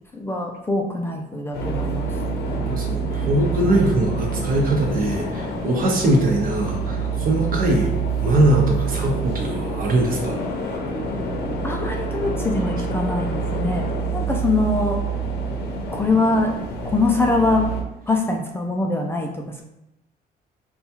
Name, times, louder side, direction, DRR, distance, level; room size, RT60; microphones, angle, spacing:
voice 1, 0.1-2.1 10.9-11.0 11.6-13.9 14.1-15.0 15.9-16.6 16.8-17.7 18.1-19.6, left 2 dB, 15° left, 1 dB, 0.3 m, -23 dB
sound 1, 1.5-17.8, right 3 dB, 75° left, 0.8 m, -26 dB
voice 2, 2.7-10.4, right 1 dB, 55° right, 0 dB, 0.9 m, -21 dB
5.5 x 2.3 x 2.8 m, 0.88 s
cardioid pair, 145°, 17 cm